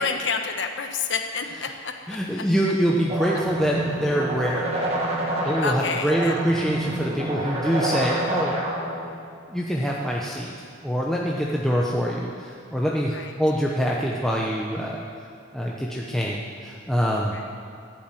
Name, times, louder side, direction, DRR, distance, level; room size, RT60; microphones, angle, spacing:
voice 1, 0.0-1.9 5.6-6.7 13.1-13.3 17.3-17.5, left 5 dB, 65° left, 5 dB, 1.1 m, -29 dB
voice 2, 2.1-4.7 5.3-8.6 9.5-10.5 10.8-15.0 15.5-17.4, equal, ahead, -3 dB, 0.9 m, -25 dB
sound 1, 3.1-9.1, right 1 dB, 30° right, 2.0 m, -28 dB
14.0 x 7.5 x 9.1 m, 2.3 s
head